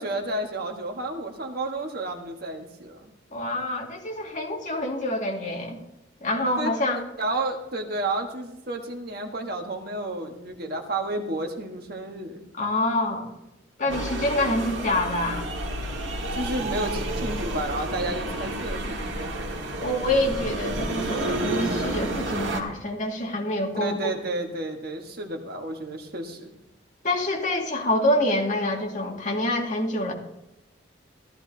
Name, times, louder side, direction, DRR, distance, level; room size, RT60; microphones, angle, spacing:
voice 1, 0.0-3.1 6.6-6.7 7.2-12.4 13.9-14.1 16.3-19.5 23.8-26.5, right 2 dB, 55° right, 3 dB, 1.4 m, -31 dB
voice 2, 3.3-5.8 6.2-7.0 12.5-13.3 13.8-15.5 19.8-24.0 27.0-30.1, left 1 dB, 40° left, 0 dB, 2.1 m, -26 dB
sound 1, 13.9-22.6, right 1 dB, 85° right, 1.7 m, -30 dB
14.5 x 14.0 x 2.8 m, 0.90 s
head